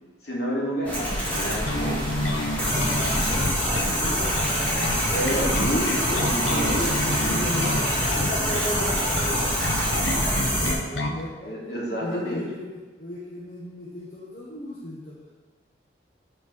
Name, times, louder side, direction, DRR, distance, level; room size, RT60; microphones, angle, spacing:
voice 1, 0.2-2.4 5.1-7.4 9.9-10.1 11.4-12.4, equal, 60° left, -5 dB, 2.7 m, -30 dB
sound 1, 0.8-10.7, equal, 10° left, 2.1 m, -25 dB
Bass guitar, 1.7-11.2, left 1 dB, 80° left, 0.8 m, -30 dB
voice 2, 3.4-4.8 7.1-9.5 10.6-11.5 12.0-15.3, left 1 dB, 45° left, -5 dB, 1.2 m, -35 dB
13.0 x 4.6 x 4.1 m, 1.3 s
head